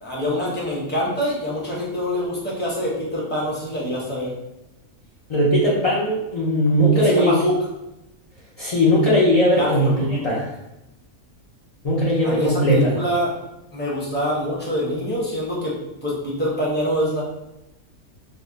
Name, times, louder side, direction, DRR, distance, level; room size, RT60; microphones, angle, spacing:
voice 1, 0.0-4.3 6.9-7.7 9.6-9.9 12.2-13.3 13.7-15.7 16.0-17.2, equal, 10° left, -5 dB, 0.6 m, -25 dB
voice 2, 5.3-7.4 8.6-10.5 11.8-12.9, equal, 75° left, -6 dB, 0.3 m, -18 dB
2.6 x 2.1 x 3.8 m, 0.92 s
omnidirectional pair, 1.5 m